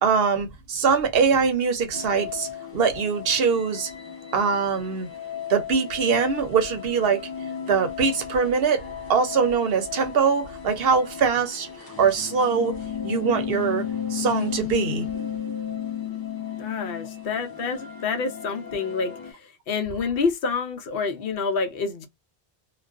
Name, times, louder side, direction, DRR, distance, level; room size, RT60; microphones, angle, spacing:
voice 1, 0.0-3.9 4.3-5.1 5.5-7.2 7.7-8.8 9.1-11.7 12.0-12.7 13.0-13.8 14.1-15.6, right 5 dB, 70° right, 0.8 m, -23 dB
sound 1, 1.9-19.3, left 8 dB, 25° left, 0.6 m, -34 dB
voice 2, 16.6-22.1, left 4 dB, 65° left, 0.7 m, -28 dB
2.3 x 2.2 x 2.3 m
omnidirectional pair, 1.1 m